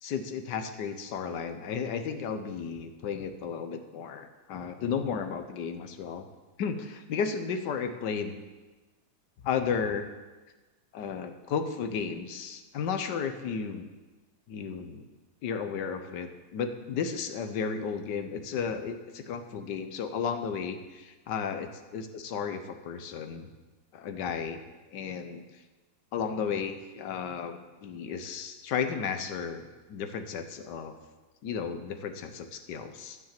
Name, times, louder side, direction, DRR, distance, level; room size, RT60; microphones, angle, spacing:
voice 1, 0.0-6.3 6.6-8.4 9.4-10.1 10.9-13.9 14.5-15.0 15.4-23.5 23.9-24.6 24.9-25.4 26.1-30.9 31.4-33.2, left 6 dB, 80° left, 8 dB, 1.5 m, -33 dB
10.5 x 6.2 x 7.4 m, 1.2 s
omnidirectional pair, 1.8 m